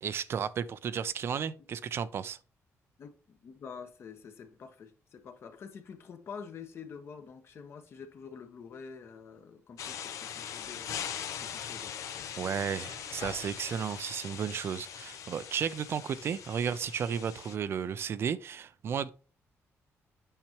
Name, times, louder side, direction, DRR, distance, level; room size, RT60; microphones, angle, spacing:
voice 1, 0.0-2.4 12.4-19.1, right 7 dB, 50° right, 0.5 m, -33 dB
voice 2, 3.0-11.1 11.4-11.9, left 6 dB, 50° left, 1.2 m, -47 dB
sound 1, 9.8-17.6, left 9 dB, 80° left, 0.8 m, -41 dB
8.8 x 5.8 x 2.9 m
cardioid pair, 155°, 5 cm